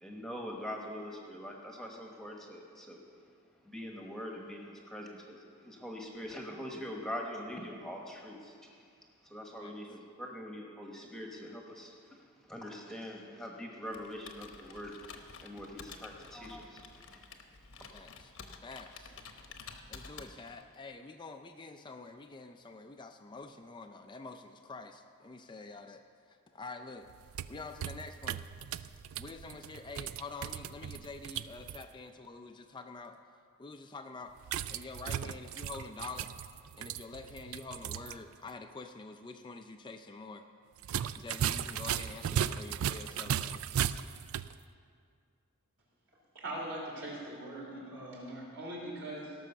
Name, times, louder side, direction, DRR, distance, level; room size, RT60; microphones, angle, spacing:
voice 1, 0.0-3.0 3.6-8.9 9.2-17.3 17.8-17.9, equal, ahead, 0 dB, 1.1 m, -43 dB
Computer keyboard, 13.9-20.7, left 5 dB, 70° left, 1.0 m, -51 dB
voice 2, 17.9-18.3 18.6-19.2 19.9-27.1 27.5-28.4 29.2-33.2 33.6-34.3 34.7-36.3 36.7-40.5 41.1-43.6, left 3 dB, 20° left, 6 dB, 0.4 m, -47 dB
sound 1, 27.1-31.8 34.4-38.2 38.5-38.6 40.8-44.5, right 9 dB, 75° right, 0.3 m, -36 dB
voice 3, 46.3-49.3, right 1 dB, 60° right, -3 dB, 3.5 m, -41 dB
17.0 x 6.2 x 6.7 m, 2.2 s
head